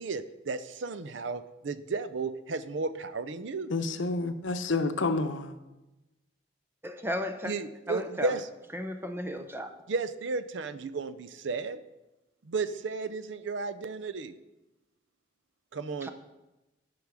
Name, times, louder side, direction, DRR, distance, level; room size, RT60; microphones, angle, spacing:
voice 1, 0.0-3.7 7.4-8.4 9.9-11.8 12.4-14.3 15.7-16.1, right 4 dB, 75° right, 13 dB, 0.5 m, -33 dB
voice 2, 3.7-5.6, left 3 dB, 80° left, 9 dB, 0.7 m, -29 dB
voice 3, 6.8-7.5 7.9-8.4 8.7-9.7 16.0-16.1, equal, 10° right, 6 dB, 0.7 m, -34 dB
11.5 x 5.1 x 6.1 m, 1.0 s
head